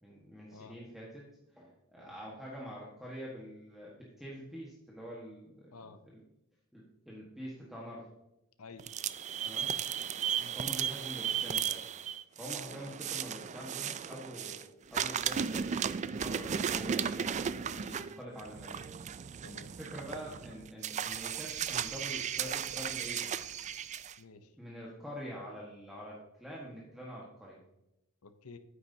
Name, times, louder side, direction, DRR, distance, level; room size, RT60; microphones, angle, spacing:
voice 1, 0.0-1.3 1.5-5.7 6.0-6.2 6.7-8.0 9.4-9.7 10.5-11.8 12.4-15.7 16.1-18.9 19.7-23.3 24.6-27.6, equal, ahead, -5 dB, 1.5 m, -45 dB
sound 1, 8.8-14.6 14.9-24.1, right 8 dB, 35° right, 0.3 m, -35 dB
voice 2, 24.2-24.6 28.2-28.6, left 4 dB, 85° left, 10 dB, 0.7 m, -51 dB
9.4 x 8.9 x 2.8 m, 0.88 s
head